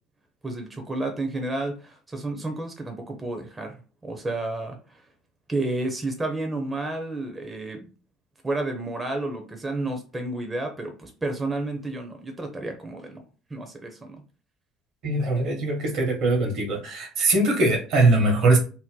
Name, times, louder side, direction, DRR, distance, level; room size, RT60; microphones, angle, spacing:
voice 1, 0.4-3.7 4.0-5.0 5.5-7.9 8.4-13.2 13.5-14.2, right 2 dB, 20° right, 4 dB, 0.8 m, -31 dB
voice 2, 15.0-18.6, right 2 dB, 65° right, 3 dB, 1.2 m, -21 dB
2.8 x 2.1 x 3.7 m, 0.36 s
hypercardioid pair, 65°, 0 cm